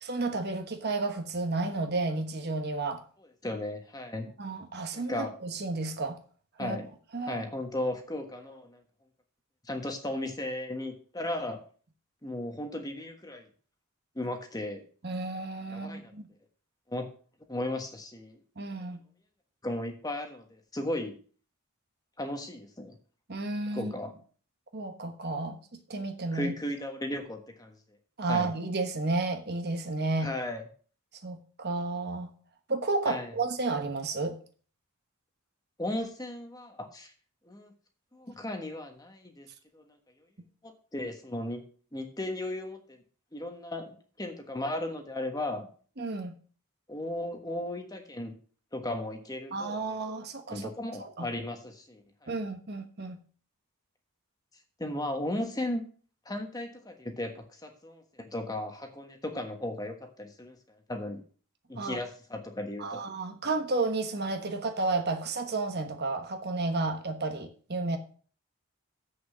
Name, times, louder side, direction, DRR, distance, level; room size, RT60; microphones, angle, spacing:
voice 1, 0.0-3.0 4.4-6.2 6.6-6.8 7.1-7.4 15.0-16.3 18.6-19.0 23.3-23.9 24.7-25.6 25.9-26.5 28.2-30.3 31.2-32.3 32.7-34.4 46.0-46.3 49.5-50.7 51.0-51.3 52.3-53.2 61.8-62.0 62.8-68.0, right 3 dB, 45° right, 6 dB, 1.2 m, -32 dB
voice 2, 3.4-4.3 4.9-5.3 6.6-6.9 7.2-8.8 9.6-11.6 12.2-13.4 14.1-14.9 15.7-16.1 16.9-17.1 17.5-18.4 19.6-21.2 22.2-23.0 23.7-24.1 26.3-27.8 28.3-28.5 30.2-30.6 33.0-33.3 35.8-37.1 37.4-37.7 38.1-39.5 39.7-39.8 40.6-41.6 41.9-43.0 43.3-45.7 46.9-48.3 48.7-49.8 50.5-52.3 54.8-55.8 56.2-60.6 60.9-61.2 61.7-63.0, left 1 dB, 15° left, 5 dB, 1.3 m, -35 dB
7.9 x 6.5 x 6.2 m, 0.42 s
head